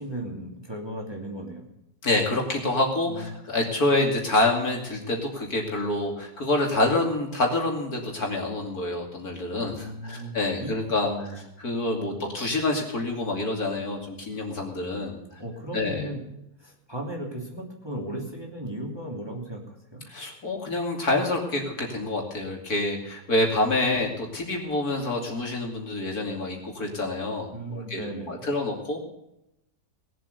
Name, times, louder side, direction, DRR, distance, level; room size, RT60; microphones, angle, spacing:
voice 1, 0.0-1.6 3.1-3.4 9.7-10.8 11.1-11.4 15.4-16.2 16.6-20.0 27.5-28.5, right 1 dB, 15° right, -1 dB, 2.7 m, -36 dB
voice 2, 2.0-15.4 15.7-16.1 20.1-28.0 28.3-29.0, left 2 dB, 50° left, 1 dB, 3.0 m, -27 dB
20.0 x 7.8 x 6.8 m, 0.84 s
omnidirectional pair, 2.0 m